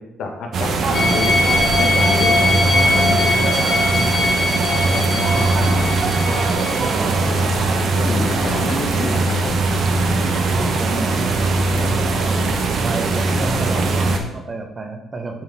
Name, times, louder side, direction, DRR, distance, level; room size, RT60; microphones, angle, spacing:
voice 1, 0.2-1.3 1.8-3.4 7.4-7.5 8.0-9.7 13.7-13.8, left 3 dB, 80° left, 1 dB, 1.2 m, -28 dB
sound 1, 0.5-14.2, right 3 dB, 65° right, 0.9 m, -20 dB
sound 2, 0.9-7.5 9.9-10.0, left 3 dB, 60° left, 1.6 m, -21 dB
voice 2, 4.8-6.0 8.1-8.7 10.3-12.0 12.8-15.4, right 2 dB, 35° right, 4 dB, 0.9 m, -32 dB
8.9 x 3.9 x 3.6 m, 0.94 s
cardioid pair, 90°, 0 cm